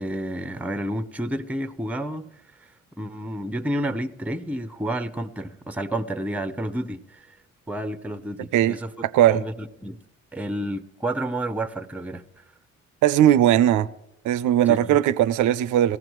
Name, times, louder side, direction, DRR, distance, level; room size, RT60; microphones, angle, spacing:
voice 1, 0.0-2.3 3.0-7.3 7.7-8.9 9.3-10.0 10.3-12.2 14.7-15.0, right 1 dB, 5° right, 0.6 m, -30 dB
voice 2, 9.0-9.4 13.0-13.9 14.2-16.0, right 11 dB, 75° right, 0.5 m, -19 dB
19.0 x 15.0 x 3.0 m
cardioid pair, 90°, 30 cm